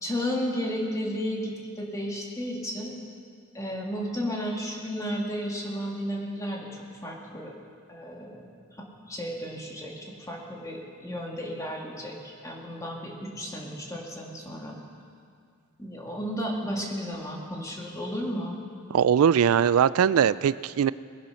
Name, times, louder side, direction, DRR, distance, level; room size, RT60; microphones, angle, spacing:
voice 1, 0.0-3.0 3.5-7.5 7.9-8.5 8.8-14.8 15.8-18.6, equal, 15° left, -1 dB, 2.1 m, -33 dB
voice 2, 18.9-20.9, right 8 dB, 85° right, 18 dB, 0.3 m, -21 dB
20.5 x 10.5 x 5.8 m, 2.2 s
head